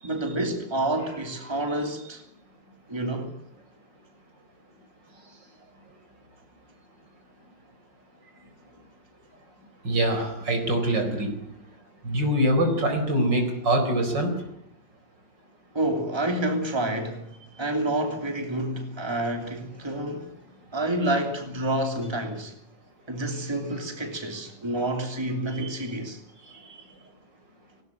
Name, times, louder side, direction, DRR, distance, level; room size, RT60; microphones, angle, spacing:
voice 1, 0.0-2.2 2.9-3.3 15.7-20.3 20.7-22.5 23.1-26.2, right 1 dB, 15° right, 3.0 m, -28 dB
voice 2, 9.8-11.4 12.0-14.4 25.5-25.7, right 1 dB, 70° right, 5.0 m, -24 dB
19.0 x 18.5 x 8.7 m
omnidirectional pair, 2.0 m